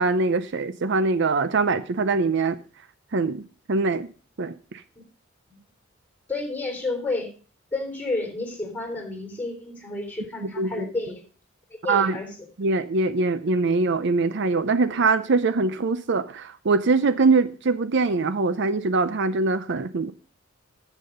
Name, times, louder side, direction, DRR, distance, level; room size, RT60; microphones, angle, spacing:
voice 1, 0.0-2.6 3.1-3.4 3.7-4.1 4.4-4.5 10.6-10.9 11.9-12.2 12.6-20.1, right 3 dB, 60° right, 13 dB, 0.6 m, -23 dB
voice 2, 6.3-7.3 7.7-11.2 11.8-12.3, left 2 dB, 10° left, 2 dB, 3.5 m, -30 dB
10.5 x 7.4 x 5.3 m, 0.39 s
head